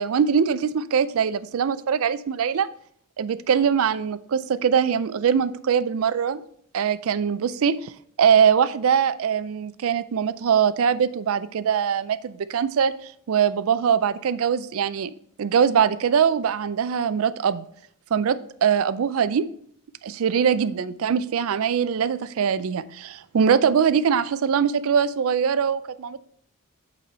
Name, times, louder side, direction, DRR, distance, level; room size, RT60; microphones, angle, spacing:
voice 1, 0.0-2.7 3.2-6.4 6.7-7.9 8.2-15.1 15.4-17.6 18.1-19.5 20.0-26.2, right 7 dB, 70° right, 16 dB, 0.4 m, -22 dB
8.3 x 4.1 x 4.3 m, 0.64 s
head